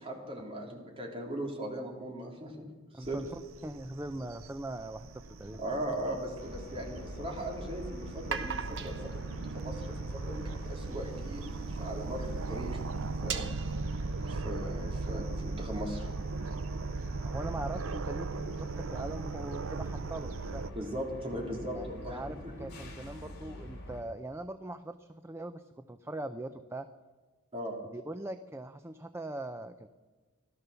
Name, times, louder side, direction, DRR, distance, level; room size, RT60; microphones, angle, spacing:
voice 1, 0.0-2.7 2.9-3.2 5.6-9.9 10.2-12.8 13.2-13.5 14.2-16.1 18.3-18.4 20.7-22.2 27.5-27.8, right 1 dB, 30° right, -1 dB, 3.4 m, -38 dB
voice 2, 2.9-5.6 17.2-20.7 21.7-21.9 22.1-26.9 27.9-29.9, right 1 dB, 15° right, 9 dB, 0.5 m, -41 dB
sound 1, 3.0-20.7, right 3 dB, 80° right, 0.6 m, -38 dB
sound 2, 5.1-6.7 8.1-11.0 11.6-11.7 12.0-12.2 12.5-12.6 13.0-14.5, right 7 dB, 65° right, 1.1 m, -41 dB
sound 3, 6.4-24.0, equal, 50° left, 3.3 m, -46 dB
16.5 x 12.5 x 6.9 m, 1.3 s
head